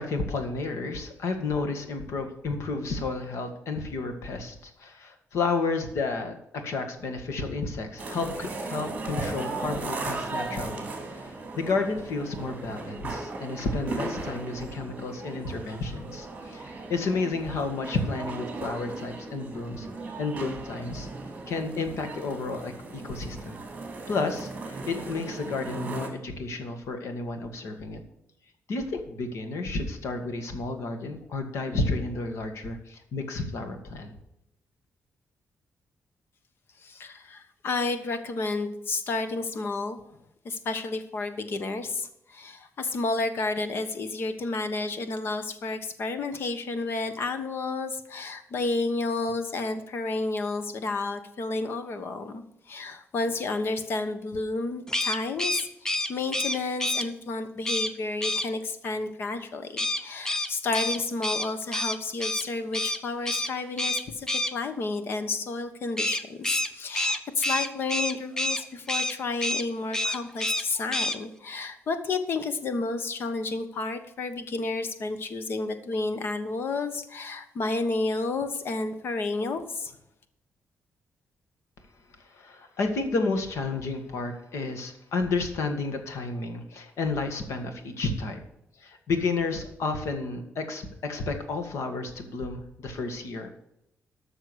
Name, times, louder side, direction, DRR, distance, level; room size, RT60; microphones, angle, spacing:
voice 1, 0.0-19.9 20.2-21.1 21.5-23.6 24.1-28.0 28.7-34.1 82.2-88.4 88.8-93.5, left 3 dB, 70° left, 6 dB, 1.9 m, -31 dB
sound 1, 8.0-26.1, right 3 dB, 25° right, 2.8 m, -37 dB
voice 2, 36.8-40.2 40.4-80.0, left 3 dB, 50° left, 10 dB, 1.2 m, -31 dB
sound 2, 54.9-57.1 57.6-57.9 58.2-58.5 59.8-62.4 62.7-63.0 63.2-63.5 63.8-64.5 66.0-68.6 68.9-69.1 69.4-69.6 69.9-70.6 70.9-71.2, left 1 dB, 10° left, 0.7 m, -28 dB
13.0 x 6.3 x 6.4 m, 0.82 s
wide cardioid pair, 170°, 5 cm